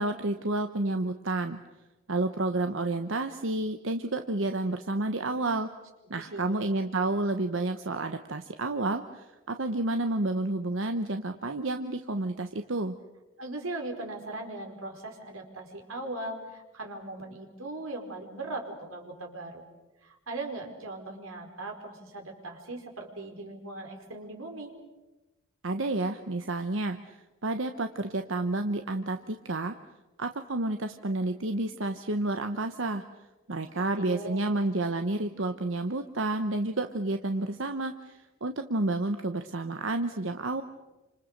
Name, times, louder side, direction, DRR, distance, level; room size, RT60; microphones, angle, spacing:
voice 1, 0.0-1.6 2.1-5.7 6.1-13.0 25.6-29.7 30.2-33.0 33.5-40.6, right 2 dB, 70° right, 7 dB, 1.0 m, -30 dB
voice 2, 6.1-6.6 13.4-19.6 20.0-24.7 33.7-34.5, right 2 dB, 85° right, 2 dB, 4.8 m, -39 dB
28.5 x 26.5 x 6.7 m, 1.1 s
head